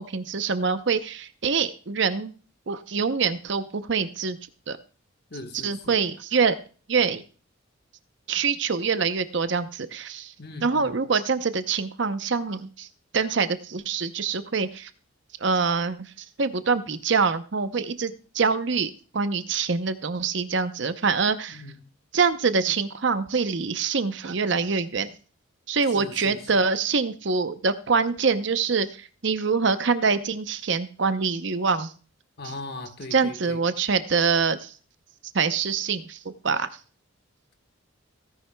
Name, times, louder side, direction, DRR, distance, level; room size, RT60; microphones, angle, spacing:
voice 1, 0.0-2.3 2.7-4.4 4.7-4.8 5.5-6.6 6.9-7.2 8.3-10.3 10.6-12.9 13.1-14.9 15.4-21.6 22.1-25.1 25.7-31.9 32.4-32.5 33.1-34.7 35.3-36.7, right 5 dB, 60° right, 0.7 m, -25 dB
voice 2, 5.3-6.0 10.4-10.9 21.5-21.7 25.9-26.4 32.4-33.6, left 2 dB, 50° left, 1.4 m, -39 dB
16.5 x 10.5 x 2.2 m
head